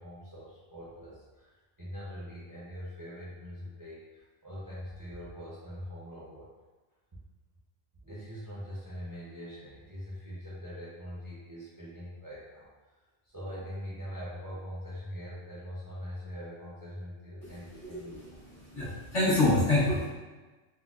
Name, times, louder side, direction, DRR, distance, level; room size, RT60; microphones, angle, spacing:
voice 1, 0.0-6.5 8.0-12.7 13.2-18.3, equal, 20° right, -9 dB, 0.6 m, -42 dB
voice 2, 17.8-18.2 18.6-20.1, left 2 dB, 65° left, -10 dB, 1.6 m, -27 dB
4.1 x 2.2 x 2.4 m, 1.2 s
omnidirectional pair, 1.4 m